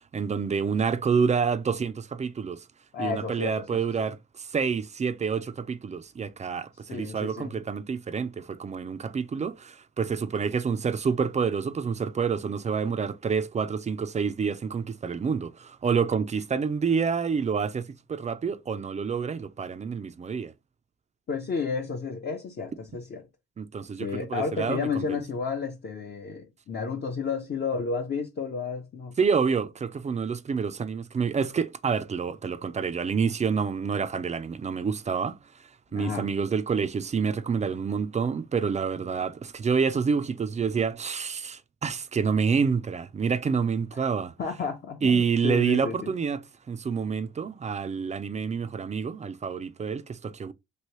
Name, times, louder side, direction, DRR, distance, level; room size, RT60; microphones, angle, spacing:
voice 1, 0.1-2.6 3.0-20.5 23.6-25.2 29.2-44.3 45.0-50.5, right 6 dB, 25° right, 0.3 m, -28 dB
voice 2, 2.9-4.1 6.9-7.5 21.3-23.2 24.0-29.1 35.9-36.3 43.9-44.1 44.4-46.1, left 5 dB, 35° left, 0.6 m, -32 dB
3.1 x 2.7 x 3.0 m
cardioid pair, 90°, 30 cm